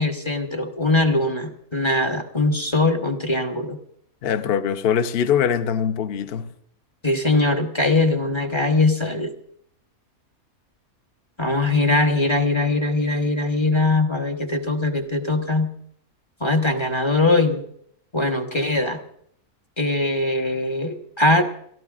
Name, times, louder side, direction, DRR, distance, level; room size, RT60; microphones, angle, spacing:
voice 1, 0.0-3.8 7.0-9.3 11.4-15.7 16.4-17.6 18.1-19.0 19.8-21.4, left 2 dB, 20° left, 0.9 m, -21 dB
voice 2, 4.2-6.5, left 8 dB, 50° left, 0.8 m, -22 dB
29.0 x 13.5 x 2.4 m
omnidirectional pair, 1.6 m